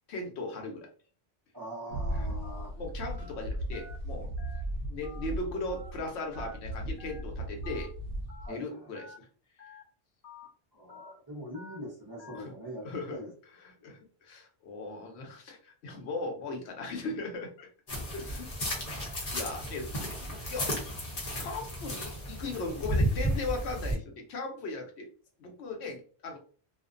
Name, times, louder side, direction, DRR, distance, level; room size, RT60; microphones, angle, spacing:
voice 1, 0.1-0.9 2.2-2.3 2.8-4.3 4.9-7.9 8.5-9.3 12.3-12.5 12.8-13.2 13.6-17.7 18.1-18.5 18.7-19.0 19.3-20.7 21.3-25.1 25.4-26.4, left 3 dB, 90° left, 2 dB, 0.9 m, -38 dB
voice 2, 1.5-2.7 8.4-8.9 10.7-13.3 18.1-18.6, equal, 25° right, -4 dB, 0.6 m, -43 dB
sound 1, 1.9-6.1 6.3-8.5, right 1 dB, 60° right, 0.7 m, -36 dB
Telephone, 2.4-2.7 3.1-3.3 3.7-4.0 4.4-4.6 5.0-5.3 5.7-5.9 6.3-6.6 7.0-7.2 7.6-7.9 8.3-8.5 8.9-9.2 9.6-9.8 10.2-10.5 10.9-11.1 11.5-11.8 12.2-12.4, left 3 dB, 60° left, 1.0 m, -50 dB
sound 2, 17.9-23.9, equal, 40° left, 0.8 m, -33 dB
2.4 x 2.1 x 2.4 m, 0.41 s
omnidirectional pair, 1.1 m